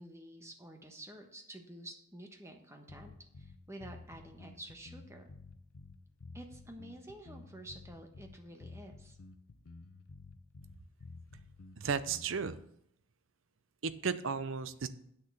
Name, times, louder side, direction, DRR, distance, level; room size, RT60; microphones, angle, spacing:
voice 1, 0.0-5.3 6.3-9.2, right 1 dB, 15° right, 4 dB, 1.1 m, -50 dB
sound 1, 2.9-12.5, left 3 dB, 90° left, 0.7 m, -52 dB
voice 2, 11.8-12.6 13.8-14.9, right 5 dB, 70° right, 13 dB, 0.6 m, -34 dB
8.1 x 6.5 x 7.1 m, 0.73 s
head